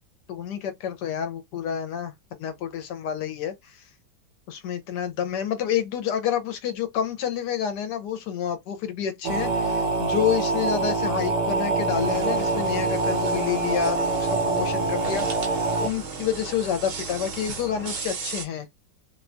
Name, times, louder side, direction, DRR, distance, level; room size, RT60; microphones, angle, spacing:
voice 1, 0.3-2.1 2.4-3.9 4.5-18.7, left 9 dB, 75° left, 1.1 m, -29 dB
sound 1, 9.2-15.9, right 3 dB, 75° right, 1.3 m, -25 dB
sound 2, 11.8-18.4, right 5 dB, 60° right, 0.9 m, -36 dB
2.9 x 2.1 x 2.4 m
omnidirectional pair, 1.9 m